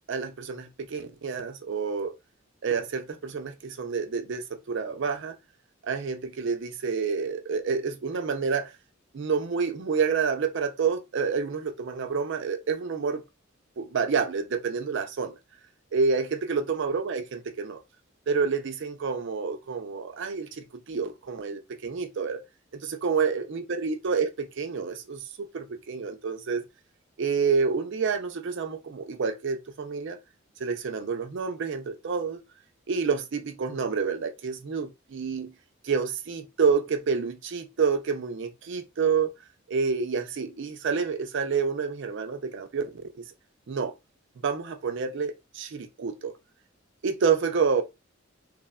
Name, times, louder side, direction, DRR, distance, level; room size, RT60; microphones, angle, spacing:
voice 1, 0.1-2.1 2.6-5.3 5.8-8.7 9.1-13.2 13.8-15.3 15.9-17.8 18.3-22.4 22.7-26.6 27.2-30.2 30.6-32.4 32.9-35.5 35.8-39.3 39.7-43.0 43.7-43.9 44.4-46.3 47.0-47.8, right 5 dB, 65° right, 0.5 m, -28 dB
3.2 x 2.1 x 2.3 m
head